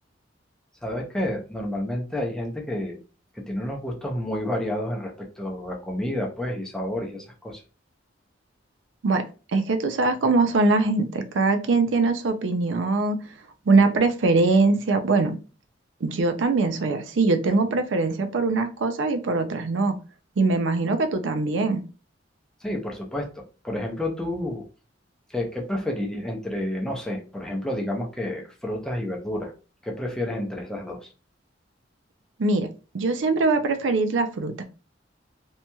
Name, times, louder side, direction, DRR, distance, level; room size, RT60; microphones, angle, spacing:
voice 1, 0.8-3.0 3.3-7.6 22.6-24.6 25.3-29.5 29.8-31.1, left 1 dB, 5° left, 0 dB, 0.6 m, -30 dB
voice 2, 9.5-13.2 13.7-15.4 16.0-19.9 20.4-21.8 32.4-32.7 32.9-34.6, right 3 dB, 80° right, 8 dB, 0.5 m, -22 dB
2.9 x 2.7 x 2.2 m, 0.34 s
head